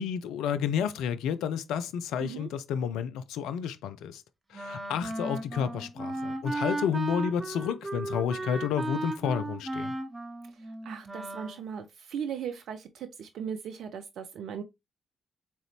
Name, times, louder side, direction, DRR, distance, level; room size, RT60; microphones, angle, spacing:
voice 1, 0.0-4.2 4.5-9.9, left 8 dB, 70° left, 0.3 m, -31 dB
Wind instrument woodwind instrument, 4.5-11.6, right 2 dB, 20° right, 0.8 m, -35 dB
voice 2, 10.6-14.6, right 7 dB, 65° right, 0.4 m, -38 dB
3.6 x 3.0 x 3.1 m
figure-of-eight pair, 40°, 0 cm